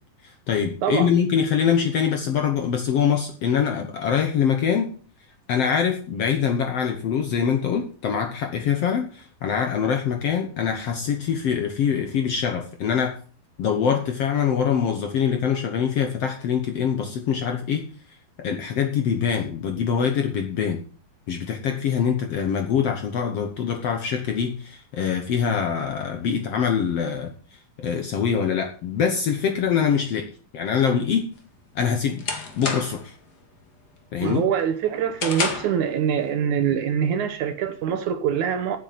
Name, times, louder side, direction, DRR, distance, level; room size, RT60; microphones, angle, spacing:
voice 1, 0.2-4.9 5.5-13.2 13.6-17.9 18.4-20.8 21.3-27.3 27.8-31.3 31.7-32.2 32.6-33.1 34.1-34.4, left 7 dB, 65° left, 1.7 m, -24 dB
sound 1, 31.4-33.1 33.5-33.9 34.3-35.8, left 4 dB, 40° left, 1.7 m, -30 dB
voice 2, 34.2-38.8, right 8 dB, 70° right, 2.1 m, -24 dB
9.6 x 8.3 x 7.6 m
omnidirectional pair, 4.0 m